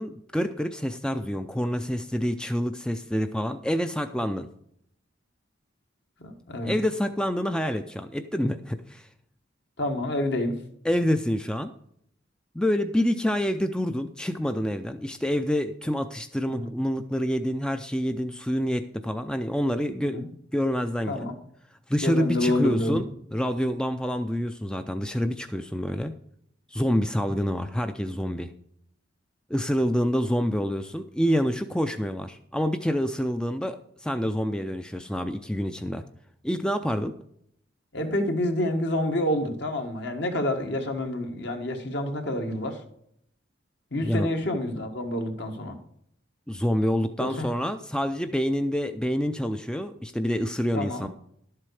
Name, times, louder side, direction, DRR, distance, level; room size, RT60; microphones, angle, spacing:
voice 1, 0.0-4.5 6.6-9.1 10.8-11.7 12.5-21.3 21.9-26.1 26.7-28.5 29.5-36.0 36.4-37.1 44.0-44.3 46.5-51.1, equal, 5° left, 8 dB, 0.4 m, -27 dB
voice 2, 6.2-6.8 9.8-10.6 16.5-16.7 20.0-20.3 21.1-21.4 22.0-23.0 37.9-42.8 43.9-45.8 47.2-47.5 50.7-51.1, left 1 dB, 60° left, 5 dB, 1.6 m, -28 dB
11.5 x 7.6 x 4.8 m, 0.71 s
head